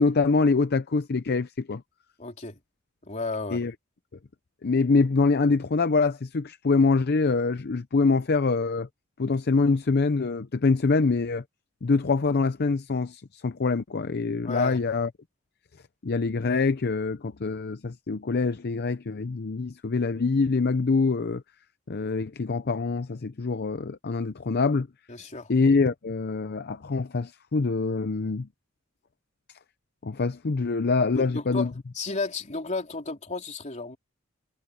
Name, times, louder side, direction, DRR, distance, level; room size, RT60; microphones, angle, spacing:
voice 1, 0.0-1.8 3.5-3.7 4.6-8.9 9.2-11.4 11.8-15.1 16.0-21.4 21.9-24.9 25.5-28.5 30.0-31.7, left 4 dB, 55° left, 0.6 m, -25 dB
voice 2, 2.2-2.6 3.0-3.6 14.4-14.8 25.1-25.5 31.1-34.0, left 3 dB, 35° left, 3.6 m, -33 dB
head